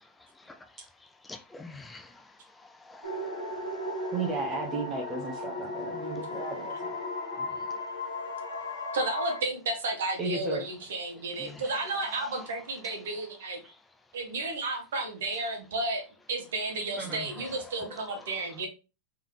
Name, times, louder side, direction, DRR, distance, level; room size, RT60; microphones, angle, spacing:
voice 1, 1.2-2.2 2.6-4.1 7.4-7.5 11.4-11.6 12.1-12.2 17.1-17.5, left 3 dB, 10° left, 0.4 m, -47 dB
sound 1, 3.0-9.4, left 2 dB, 85° left, 1.7 m, -36 dB
voice 2, 4.1-6.9 10.2-10.6 13.6-13.7 17.0-17.2, right 3 dB, 25° right, 1.0 m, -34 dB
voice 3, 8.9-13.6 14.1-16.0 16.3-18.7, right 2 dB, 65° right, 1.3 m, -32 dB
3.6 x 3.5 x 3.1 m
figure-of-eight pair, 95°, 0 cm